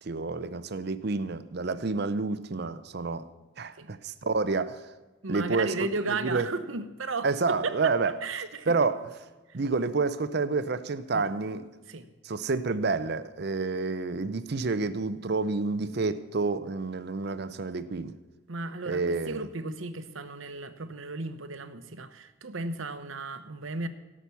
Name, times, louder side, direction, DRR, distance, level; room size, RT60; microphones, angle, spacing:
voice 1, 0.0-3.3 3.6-4.9 5.3-5.8 6.1-6.5 7.2-8.1 8.7-9.0 9.5-11.7 12.2-18.2 18.9-19.5, right 3 dB, 55° right, 0.6 m, -29 dB
voice 2, 5.2-8.7 11.1-11.3 11.9-12.1 18.5-23.9, right 3 dB, 80° right, 1.0 m, -35 dB
17.0 x 6.1 x 6.9 m
head